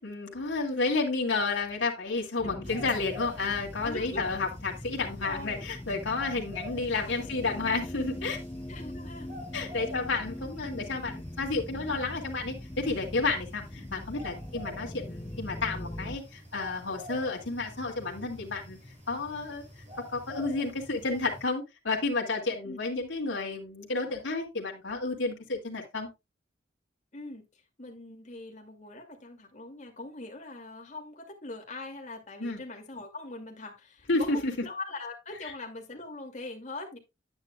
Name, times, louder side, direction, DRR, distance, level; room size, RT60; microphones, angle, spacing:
voice 1, 0.0-8.4 9.5-18.8 19.1-19.6 20.1-26.1 32.4-32.6 34.1-34.5, left 3 dB, 80° left, -1 dB, 2.4 m, -31 dB
voice 2, 2.4-2.9 3.8-4.3 5.0-5.7 6.7-7.4 8.7-9.3 9.7-10.6 22.6-22.8 27.1-37.0, left 2 dB, 40° left, 1 dB, 2.5 m, -42 dB
sound 1, 2.4-16.2, left 1 dB, 15° left, 0.5 m, -42 dB
sound 2, 2.6-21.4, left 1 dB, 40° right, 6.7 m, -47 dB
9.7 x 9.5 x 2.3 m, 0.22 s
head